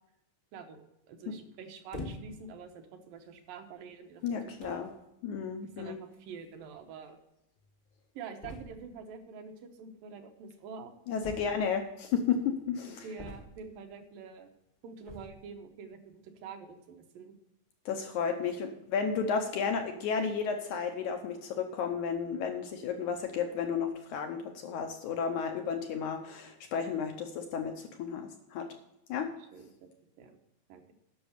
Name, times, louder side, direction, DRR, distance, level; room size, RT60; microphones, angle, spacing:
voice 1, 0.5-4.4 4.6-4.8 5.6-7.2 8.1-10.9 11.4-11.6 13.0-14.5 14.8-17.4 29.1-29.2 29.5-29.9 30.2-30.4 30.7-30.9, right 5 dB, 90° right, 5 dB, 2.8 m, -47 dB
sound 1, 1.9-2.5 3.3-3.5 4.3-4.4 4.6-4.9 6.1-6.2 6.4-6.5 6.8-6.9 8.4-8.9 11.2-11.9 13.2-13.8 15.0-15.5, left 1 dB, 35° left, 0.7 m, -44 dB
voice 2, 4.2-4.9 5.2-6.0 11.1-13.1 17.9-28.7 29.1-29.3, left 6 dB, 70° left, 5 dB, 2.1 m, -33 dB
10.0 x 6.6 x 6.6 m, 0.84 s
omnidirectional pair, 3.8 m